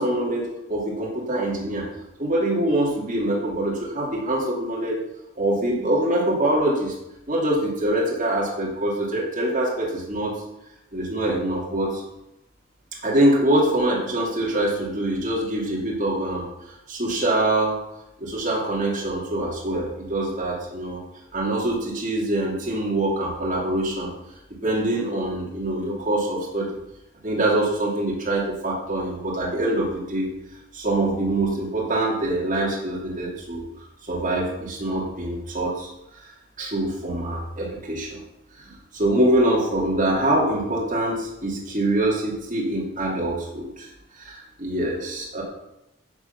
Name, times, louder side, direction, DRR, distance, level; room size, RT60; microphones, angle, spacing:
voice 1, 0.0-1.9 2.2-5.0 5.4-6.9 7.3-10.3 10.9-12.0 13.0-17.8 18.2-21.0 21.3-24.1 24.6-26.8 27.2-30.3 30.7-33.6 34.1-35.9 36.2-36.3 36.6-38.2 38.6-43.9 44.2-45.4, right 1 dB, 40° right, -4 dB, 2.6 m, -24 dB
11.0 x 6.4 x 5.8 m, 0.89 s
head